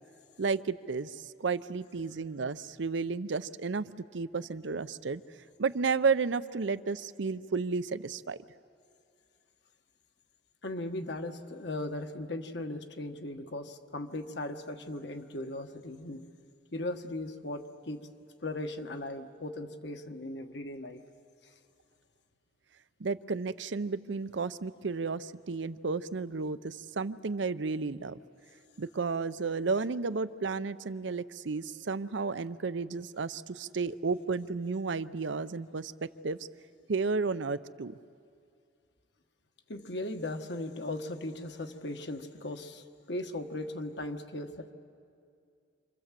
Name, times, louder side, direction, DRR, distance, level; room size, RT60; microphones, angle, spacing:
voice 1, 0.4-5.2 5.6-8.4 23.0-28.2 28.8-36.4 36.9-38.0, right 4 dB, 80° right, 14 dB, 0.6 m, -32 dB
voice 2, 10.6-16.3 16.7-18.0 18.4-21.0 39.7-44.7, left 1 dB, 65° left, 6 dB, 1.4 m, -38 dB
27.5 x 26.0 x 7.5 m, 2.3 s
head